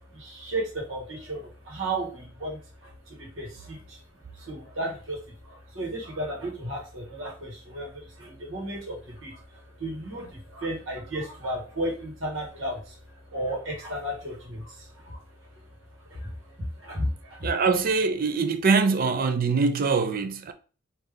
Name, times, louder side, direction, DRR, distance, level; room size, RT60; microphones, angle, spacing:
voice 1, 0.1-4.0 4.3-13.0 13.3-15.2 16.1-17.5, right 1 dB, 90° right, 1.5 m, -34 dB
voice 2, 17.4-20.5, right 4 dB, 50° right, 0.4 m, -23 dB
3.4 x 2.8 x 3.6 m
head